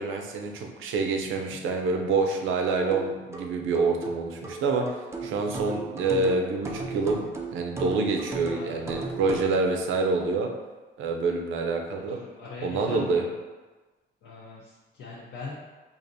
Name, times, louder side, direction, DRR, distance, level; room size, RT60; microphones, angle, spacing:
voice 1, 0.0-4.9 5.2-7.2 7.5-10.5 11.0-12.2 12.6-13.3, right 3 dB, 80° right, 2 dB, 0.6 m, -27 dB
sound 1, 2.9-9.6, right 3 dB, 15° right, 0.4 m, -36 dB
voice 2, 5.2-5.6 8.5-9.1 12.1-13.3 14.2-15.5, left 3 dB, 75° left, -6 dB, 0.7 m, -42 dB
4.8 x 2.5 x 2.6 m, 1.3 s
cardioid pair, 145°, 20 cm